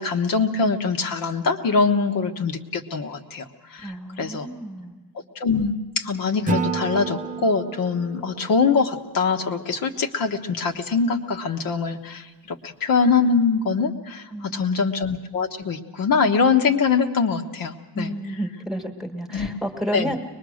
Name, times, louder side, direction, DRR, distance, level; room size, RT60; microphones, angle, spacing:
voice 1, 0.0-4.5 5.3-18.1 19.3-19.5 19.9-20.2, left 5 dB, 55° left, 3 dB, 1.3 m, -23 dB
voice 2, 3.8-5.0 14.3-14.9 17.9-20.2, right 1 dB, ahead, 4 dB, 1.5 m, -31 dB
Acoustic guitar / Strum, 6.5-9.6, right 4 dB, 20° right, 0.8 m, -30 dB
23.5 x 21.0 x 6.4 m, 1.2 s
cardioid pair, 180°, 41 cm